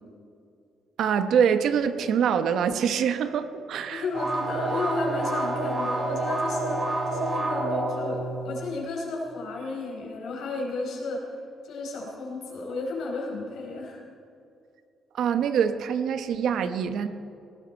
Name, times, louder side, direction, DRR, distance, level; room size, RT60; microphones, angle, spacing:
voice 1, 1.0-4.0 15.1-17.1, right 7 dB, 75° right, 10 dB, 1.0 m, -24 dB
voice 2, 3.9-11.3 11.6-14.0, left 3 dB, 75° left, -1 dB, 4.8 m, -33 dB
sound 1, 4.1-8.8, right 2 dB, 35° right, 4.2 m, -28 dB
19.0 x 17.0 x 4.5 m, 2.5 s
cardioid pair, 90°, 0 cm